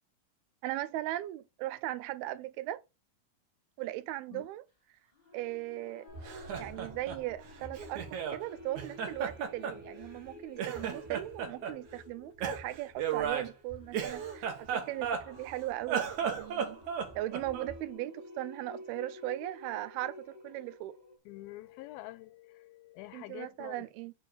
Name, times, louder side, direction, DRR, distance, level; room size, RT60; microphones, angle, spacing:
voice 1, 0.6-2.8 3.8-4.6 5.3-6.1 6.6-16.8 17.1-21.0 23.1-24.1, right 15 dB, 90° right, 2.6 m, -38 dB
sound 1, 5.1-21.2, left 1 dB, 15° left, 1.7 m, -52 dB
Laughter, 6.1-8.4 8.8-10.3 10.6-11.8 12.4-15.5 15.8-17.8, right 7 dB, 60° right, 2.4 m, -35 dB
voice 2, 21.3-23.9, left 17 dB, 80° left, 2.3 m, -47 dB
6.8 x 3.7 x 6.3 m
omnidirectional pair, 4.4 m